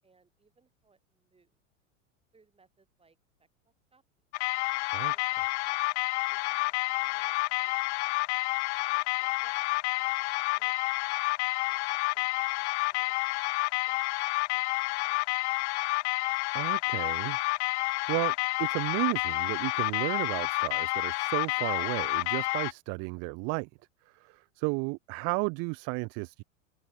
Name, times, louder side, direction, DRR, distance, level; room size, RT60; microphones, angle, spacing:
voice 1, 0.0-1.6 2.3-4.0 5.0-6.0 6.3-6.7 7.0-7.8 8.8-10.1 10.5-11.0 11.6-13.3 13.9-15.4 24.8-25.0, right 4 dB, 15° right, 6.1 m, -67 dB
sound 1, 4.3-22.7, left 22 dB, 60° left, 0.5 m, -29 dB
voice 2, 16.5-17.4 18.1-18.3 18.6-23.7 24.1-26.4, right 32 dB, 40° right, 0.5 m, -33 dB
hypercardioid pair, 95°, 39 cm